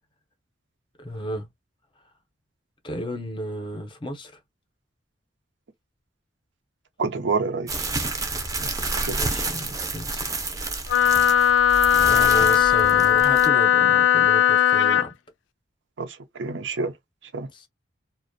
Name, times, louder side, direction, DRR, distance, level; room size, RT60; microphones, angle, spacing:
voice 1, 1.0-1.5 2.8-4.4 9.1-10.3 10.8-15.1 17.5-17.7, equal, 25° left, 0.6 m, -33 dB
voice 2, 7.0-8.0 8.6-9.2 16.0-16.9 17.3-17.5, right 4 dB, 85° right, 0.6 m, -28 dB
sound 1, 7.7-13.5, right 3 dB, 20° right, 0.5 m, -30 dB
Wind instrument woodwind instrument, 10.9-15.1, left 10 dB, 90° left, 0.3 m, -18 dB
2.5 x 2.1 x 2.5 m
head